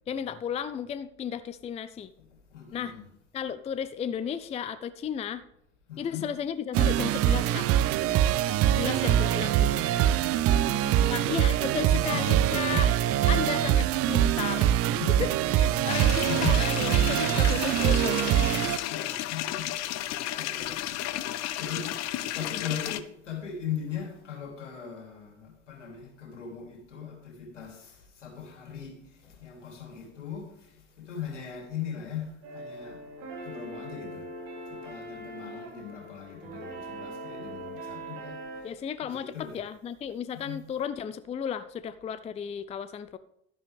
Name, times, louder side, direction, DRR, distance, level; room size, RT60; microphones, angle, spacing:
voice 1, 0.1-2.1 2.7-2.9 3.3-5.4 6.0-7.7 8.8-9.9 11.1-12.9 13.3-14.7 15.2-15.3 15.6-18.3 38.6-43.2, left 8 dB, 20° left, 14 dB, 0.5 m, -34 dB
voice 2, 2.5-3.0 5.9-6.3 8.6-9.2 9.9-11.1 11.9-12.8 15.0-15.2 15.7-15.9 16.3-16.6 18.8-21.1 21.5-33.0 33.4-34.3 34.7-39.6 40.3-40.6, left 8 dB, 75° left, 1 dB, 3.3 m, -39 dB
sound 1, 6.7-18.8, right 11 dB, 40° right, 0.6 m, -24 dB
sound 2, 15.9-23.0, left 14 dB, 45° left, 0.8 m, -33 dB
sound 3, 32.4-38.6, right 1 dB, 65° right, 4.5 m, -41 dB
11.5 x 11.0 x 3.4 m, 0.81 s
figure-of-eight pair, 70°, 36 cm